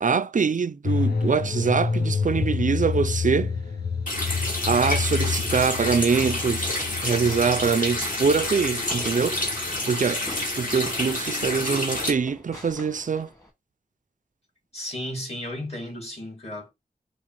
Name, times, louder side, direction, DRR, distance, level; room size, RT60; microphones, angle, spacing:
voice 1, 0.0-3.5 4.7-9.5 9.9-10.2 10.6-13.3, right 5 dB, 50° right, 0.4 m, -24 dB
sound 1, 0.8-10.7 11.0-11.1, left 5 dB, 90° left, 0.7 m, -29 dB
Water tap faucet, 4.1-12.1, left 2 dB, 55° left, 2.0 m, -29 dB
Fireworks, 6.1-13.5, left 1 dB, 20° left, 1.7 m, -43 dB
voice 2, 9.8-10.8 14.7-16.7, left 1 dB, 40° left, 2.2 m, -35 dB
5.0 x 2.5 x 3.0 m
wide cardioid pair, 55°, 17 cm